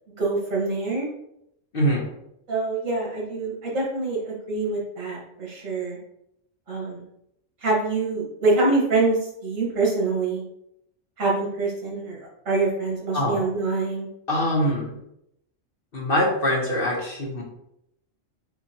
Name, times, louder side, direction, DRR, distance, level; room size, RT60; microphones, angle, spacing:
voice 1, 0.2-1.1 2.5-6.0 6.7-7.1 7.6-10.4 11.2-12.2 12.5-14.1, right 3 dB, 80° right, -4 dB, 2.0 m, -25 dB
voice 2, 1.7-2.1 13.1-13.4 14.3-14.9 15.9-17.4, equal, 45° left, -2 dB, 1.3 m, -23 dB
6.9 x 2.5 x 2.9 m, 0.79 s
omnidirectional pair, 1.3 m